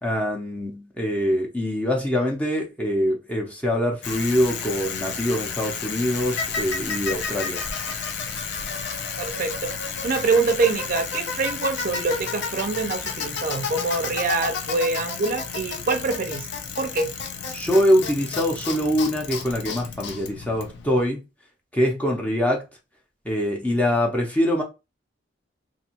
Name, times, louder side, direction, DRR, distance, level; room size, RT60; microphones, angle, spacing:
voice 1, 0.0-7.6 17.5-21.2 21.7-22.6 23.2-24.6, equal, 10° left, 0.5 m, -24 dB
Bicycle, 4.0-21.1, left 5 dB, 60° left, 0.5 m, -31 dB
voice 2, 9.2-9.5 10.0-16.5 16.8-17.1, right 3 dB, 45° right, 0.5 m, -25 dB
2.5 x 2.3 x 2.8 m
head